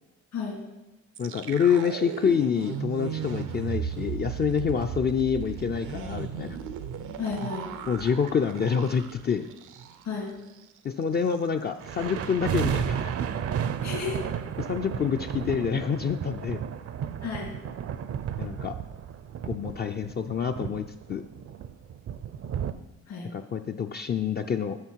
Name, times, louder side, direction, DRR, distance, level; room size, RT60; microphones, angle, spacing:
sound 1, 1.1-10.2 10.5-10.6 11.0-11.4, right 8 dB, 85° right, 0.7 m, -36 dB
voice 1, 1.2-6.6 7.9-9.5 10.8-13.1 14.6-16.6 18.4-18.7 19.5-21.2 23.3-24.8, left 7 dB, 35° left, 5 dB, 0.4 m, -27 dB
voice 2, 7.2-7.7 10.1-10.3 13.8-14.2 17.2-17.6 23.1-23.3, left 5 dB, 65° left, -2 dB, 2.4 m, -32 dB
sound 2, 11.8-22.7, right 8 dB, 50° right, 0.5 m, -33 dB
9.4 x 6.2 x 4.6 m, 1.0 s
cardioid pair, 90°, 30 cm